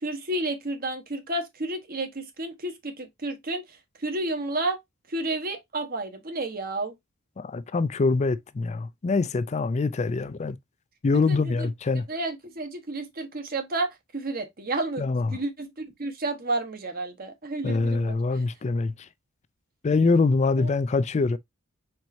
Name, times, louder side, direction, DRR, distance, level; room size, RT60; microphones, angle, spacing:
voice 1, 0.0-3.6 4.0-4.8 5.1-6.9 11.3-11.7 12.1-18.2 20.6-20.7, right 2 dB, 45° right, 1.1 m, -31 dB
voice 2, 7.4-10.6 11.0-12.0 15.0-15.4 17.6-18.9 19.8-21.4, left 3 dB, 35° left, 0.4 m, -24 dB
4.6 x 4.3 x 2.6 m
head